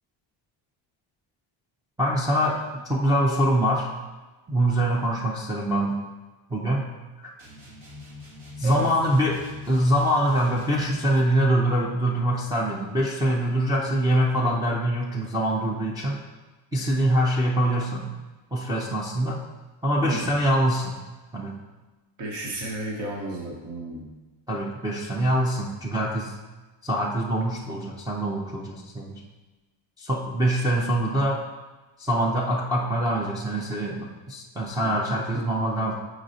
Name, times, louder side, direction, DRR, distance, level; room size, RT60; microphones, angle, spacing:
voice 1, 2.0-3.9 4.5-6.0 6.5-6.9 8.6-16.2 16.7-18.1 18.5-19.4 19.8-21.0 21.3-21.6 24.5-26.3 26.8-29.2 30.0-31.4 32.0-36.0, right 1 dB, 10° right, -5 dB, 0.4 m, -24 dB
sound 1, 7.4-10.9, left 3 dB, 85° right, 1.9 m, -43 dB
voice 2, 22.2-24.1 34.8-34.9, right 1 dB, 55° right, -2 dB, 1.2 m, -32 dB
7.4 x 4.9 x 2.6 m, 1.2 s
cardioid pair, 175°, 49 cm